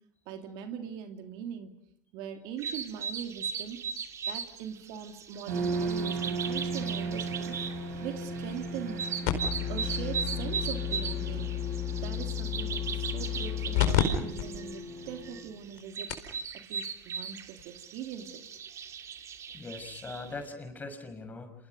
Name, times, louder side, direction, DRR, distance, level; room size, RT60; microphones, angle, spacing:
voice 1, 0.3-1.7 2.1-3.8 4.3-7.5 8.0-9.1 9.7-16.2 16.6-18.4, right 8 dB, 60° right, 5 dB, 2.9 m, -41 dB
sound 1, 2.6-20.3, right 6 dB, 35° right, 2.6 m, -38 dB
sound 2, 5.5-15.4, right 2 dB, 80° right, 7.7 m, -36 dB
sound 3, 9.2-14.0 14.4-14.5 15.1-15.2 15.8-15.9 16.1-16.4 17.6-17.7, left 12 dB, 70° left, 4.6 m, -31 dB
voice 2, 19.5-21.5, left 3 dB, 20° left, 7 dB, 6.0 m, -41 dB
30.0 x 28.0 x 5.3 m, 0.66 s
hypercardioid pair, 95°, 8 cm